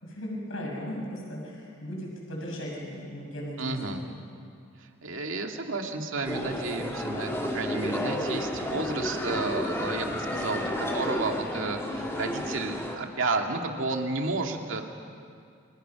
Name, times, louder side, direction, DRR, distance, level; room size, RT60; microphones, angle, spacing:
voice 1, 0.0-4.0, equal, 80° left, -1 dB, 6.1 m, -37 dB
voice 2, 3.6-4.0 4.8-14.8, right 3 dB, 75° right, 3 dB, 2.2 m, -32 dB
sound 1, 6.2-13.0, left 1 dB, 15° left, 2.4 m, -31 dB
29.0 x 25.5 x 5.9 m, 2.3 s
head